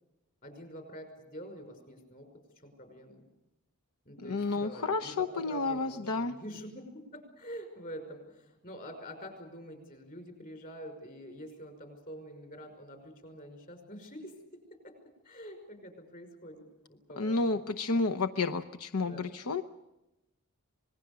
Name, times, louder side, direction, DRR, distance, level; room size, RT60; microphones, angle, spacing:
voice 1, 0.4-2.3 2.6-3.2 4.1-15.0 15.2-17.6 18.9-19.3, equal, 40° left, 6 dB, 5.6 m, -46 dB
voice 2, 4.2-6.3 17.2-19.6, left 3 dB, 85° left, 7 dB, 0.9 m, -31 dB
26.0 x 20.5 x 6.9 m, 0.94 s
head